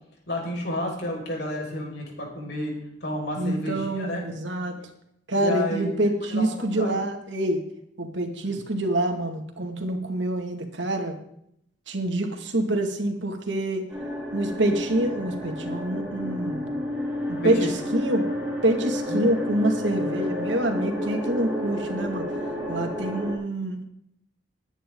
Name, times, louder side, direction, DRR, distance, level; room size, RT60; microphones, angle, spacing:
voice 1, 0.3-2.7 3.0-4.2 5.3-7.0 8.4-8.6 17.4-17.7 19.1-19.3, left 1 dB, 60° left, -1 dB, 5.7 m, -31 dB
voice 2, 3.4-4.8 5.3-7.6 8.0-11.1 11.9-13.9 14.3-16.7 17.3-18.3 18.6-22.3 22.7-23.8, right 1 dB, 75° right, 4 dB, 2.3 m, -26 dB
sound 1, 13.9-23.3, left 1 dB, 10° right, 4.2 m, -30 dB
21.5 x 9.9 x 3.9 m, 0.74 s
head